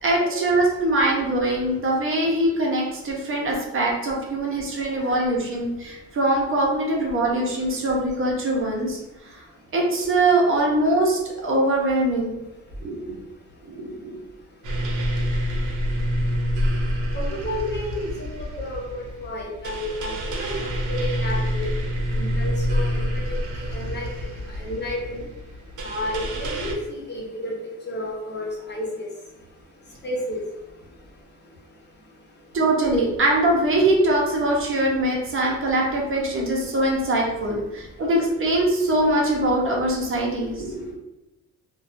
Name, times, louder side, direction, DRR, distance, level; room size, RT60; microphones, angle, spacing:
voice 1, 0.0-9.0 9.2-9.4 9.7-12.4 12.8-13.1 13.6-14.1 32.5-40.9, right 1 dB, 45° right, -1 dB, 0.7 m, -22 dB
sound 1, 14.6-26.7, equal, 80° right, 0.7 m, -27 dB
voice 2, 17.1-18.1 18.6-21.7 22.1-23.4 23.7-24.1 24.6-25.2 25.8-26.8 27.1-27.5 27.8-29.1 30.0-30.4, left 1 dB, 35° left, -2 dB, 0.8 m, -31 dB
2.6 x 2.2 x 2.5 m, 0.97 s
cardioid pair, 90°, 30 cm